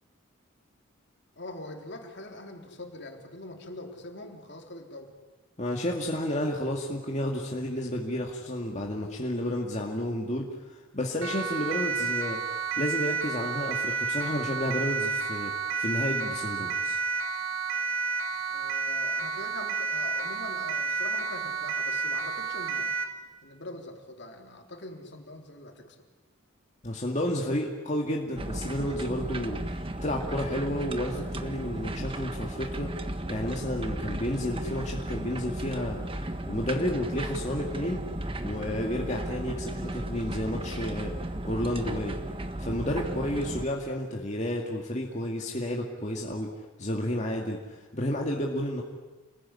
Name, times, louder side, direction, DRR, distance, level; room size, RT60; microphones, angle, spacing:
voice 1, 1.4-5.1 18.5-22.9 23.4-26.0 43.0-43.3, left 2 dB, 55° left, 3 dB, 3.6 m, -43 dB
voice 2, 5.6-12.4 12.8-17.0 26.8-32.9 33.3-36.0 36.5-38.1 38.4-41.1 41.4-42.2 42.6-46.5 46.8-48.8, left 1 dB, 35° left, -1 dB, 2.3 m, -31 dB
Siren, 11.2-23.2, right 5 dB, 75° right, 2.4 m, -30 dB
sound 1, 28.4-43.7, right 1 dB, 25° right, 1.5 m, -35 dB
29.0 x 21.0 x 9.8 m, 1.2 s
head